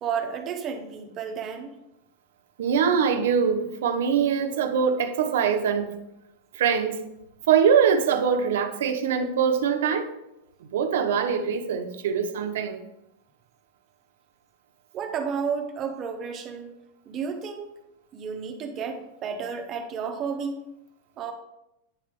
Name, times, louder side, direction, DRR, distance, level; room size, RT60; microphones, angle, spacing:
voice 1, 0.0-1.7 14.9-16.7 17.1-17.7 18.1-20.5 21.2-21.3, right 6 dB, 25° right, 4 dB, 0.9 m, -32 dB
voice 2, 2.6-5.9 6.5-7.0 7.5-10.1 10.7-12.8, right 7 dB, 80° right, 7 dB, 0.9 m, -23 dB
9.8 x 3.4 x 5.2 m, 0.88 s
supercardioid pair, 160°, 0 cm